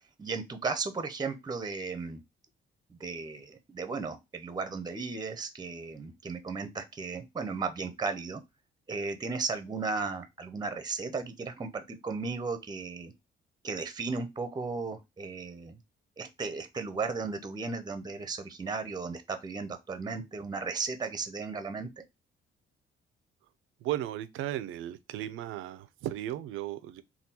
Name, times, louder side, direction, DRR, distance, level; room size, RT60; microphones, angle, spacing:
voice 1, 0.2-2.2 3.0-8.4 8.9-13.1 13.6-15.8 16.2-21.9, right 4 dB, 20° right, 0.6 m, -35 dB
voice 2, 23.8-27.0, right 12 dB, 85° right, 0.4 m, -35 dB
3.6 x 2.3 x 2.7 m
cardioid pair, 90°, 20 cm